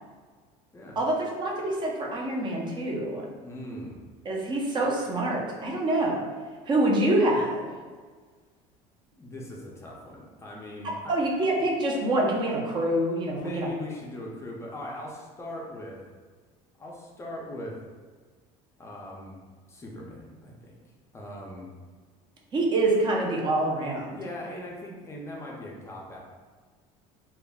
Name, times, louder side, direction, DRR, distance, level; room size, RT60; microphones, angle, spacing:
voice 1, 1.0-3.3 4.2-6.2 6.7-7.7 11.1-13.7 22.5-24.2, right 1 dB, 30° right, -1 dB, 0.6 m, -26 dB
voice 2, 3.4-4.0 9.1-11.1 13.3-16.0 16.8-17.8 18.8-19.4 19.7-20.8 21.1-21.7 24.1-26.2, left 1 dB, 20° left, -3 dB, 0.5 m, -40 dB
2.3 x 2.0 x 3.4 m, 1.5 s
cardioid pair, 120°, 15 cm